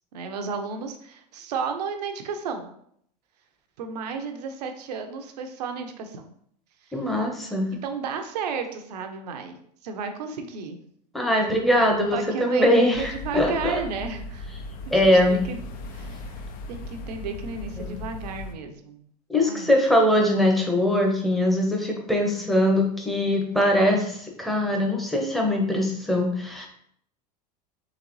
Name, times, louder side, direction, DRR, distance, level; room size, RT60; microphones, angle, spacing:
voice 1, 0.1-2.7 3.8-6.3 7.7-9.6 9.8-10.8 12.1-14.5 14.9-15.6 15.9-19.0 19.3-19.8, right 5 dB, 85° right, 6 dB, 0.7 m, -33 dB
voice 2, 6.9-7.7 11.1-13.8 14.9-15.4 17.8-18.0 19.3-26.7, left 1 dB, ahead, 0 dB, 0.9 m, -22 dB
sound 1, 12.9-18.6, left 2 dB, 45° left, 0.6 m, -37 dB
3.9 x 3.2 x 3.1 m, 0.68 s
hypercardioid pair, 105°, 20 cm